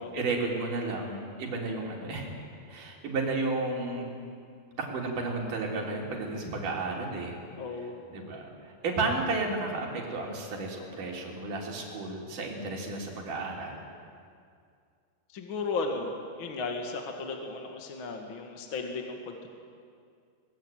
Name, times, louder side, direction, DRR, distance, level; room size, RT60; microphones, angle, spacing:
voice 1, 0.0-2.3 2.7-4.1 4.8-7.4 7.7-13.8, right 3 dB, 50° right, -1 dB, 4.9 m, -33 dB
voice 2, 7.6-8.0 15.3-19.5, left 3 dB, 45° left, 3 dB, 1.6 m, -35 dB
23.5 x 20.5 x 9.1 m, 2.2 s
omnidirectional pair, 5.2 m